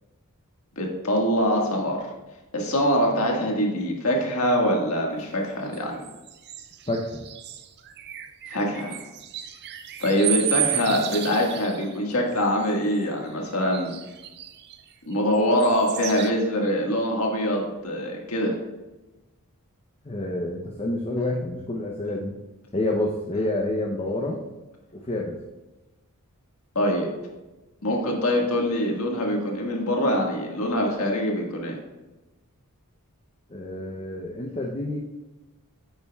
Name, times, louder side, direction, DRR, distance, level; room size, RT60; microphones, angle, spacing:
voice 1, 0.8-2.1 2.5-6.0 8.5-9.0 10.0-13.9 15.1-18.5 26.7-27.1 27.8-31.8, equal, 70° left, 0 dB, 1.7 m, -24 dB
sound 1, 5.7-12.0 12.4-13.0 13.7-15.1 15.6-16.3, right 11 dB, 50° right, 0.5 m, -33 dB
voice 2, 6.9-7.2 20.0-22.3 22.7-24.4 24.9-25.4 33.5-35.0, left 1 dB, 25° left, -1 dB, 0.7 m, -28 dB
8.9 x 8.5 x 2.3 m, 1.1 s
head